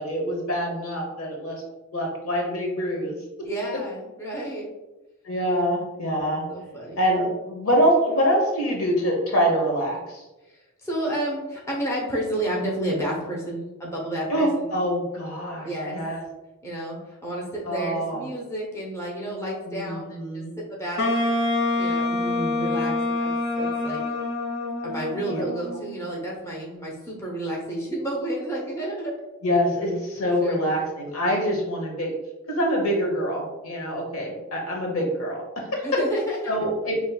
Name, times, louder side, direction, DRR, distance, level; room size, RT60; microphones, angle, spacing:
voice 1, 0.0-1.6 1.9-3.1 5.2-6.4 7.0-10.2 14.3-16.2 17.6-18.2 19.7-20.5 22.1-22.9 25.3-25.4 29.4-32.1 32.5-35.8 36.5-37.1, equal, 80° left, 0 dB, 1.1 m, -25 dB
voice 2, 3.4-4.7 5.5-5.6 6.5-7.3 10.5-14.7 15.6-16.0 16.6-21.3 21.8-22.2 22.5-24.0 24.8-29.1 30.2-30.7 35.8-36.7, right 1 dB, 15° left, -3 dB, 0.9 m, -31 dB
Wind instrument woodwind instrument, 21.0-26.0, left 2 dB, 55° left, 0.7 m, -26 dB
5.3 x 3.0 x 2.3 m, 1.1 s
head